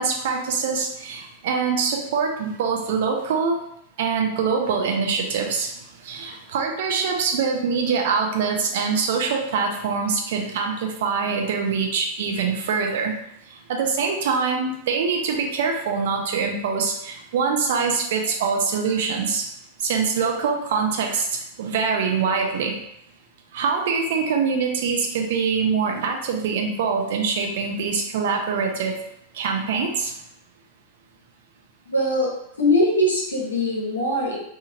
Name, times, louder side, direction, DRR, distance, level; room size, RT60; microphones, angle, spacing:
voice 1, 0.0-3.6 4.0-5.7 6.0-13.1 13.7-19.5 19.8-22.7 23.5-29.0 29.3-30.1, right 5 dB, 55° right, 2 dB, 0.5 m, -24 dB
voice 2, 31.9-32.3 32.6-34.4, left 1 dB, 75° left, -3 dB, 0.8 m, -21 dB
2.8 x 2.4 x 2.7 m, 0.76 s
figure-of-eight pair, 90°, 0 cm